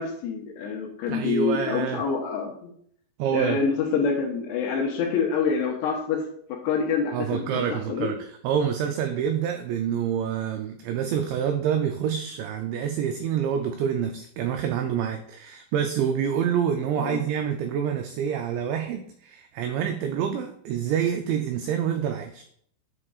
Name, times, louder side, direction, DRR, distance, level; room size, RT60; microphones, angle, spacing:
voice 1, 0.0-2.7 3.3-6.2 6.5-8.1 17.0-17.2, left 5 dB, 80° left, 0 dB, 2.6 m, -26 dB
voice 2, 1.1-2.0 3.2-3.6 7.1-22.4, right 8 dB, 85° right, 5 dB, 2.5 m, -27 dB
8.2 x 7.4 x 2.4 m, 0.65 s
omnidirectional pair, 5.7 m